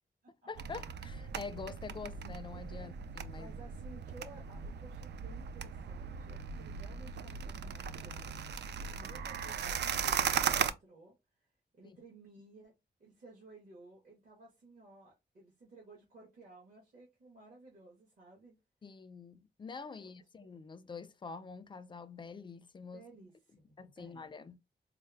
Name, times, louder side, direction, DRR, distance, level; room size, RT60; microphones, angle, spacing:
voice 1, 0.5-3.5 11.8-12.0 18.8-23.0 23.8-24.6, left 5 dB, 25° left, 0.4 m, -46 dB
sound 1, 0.6-10.7, right 7 dB, 80° right, 0.4 m, -37 dB
voice 2, 3.3-8.3 8.6-12.7 13.0-18.6 20.0-20.1 20.4-20.5 22.9-24.3, right 2 dB, 50° right, 1.4 m, -56 dB
4.3 x 2.0 x 3.3 m
wide cardioid pair, 130°, 18 cm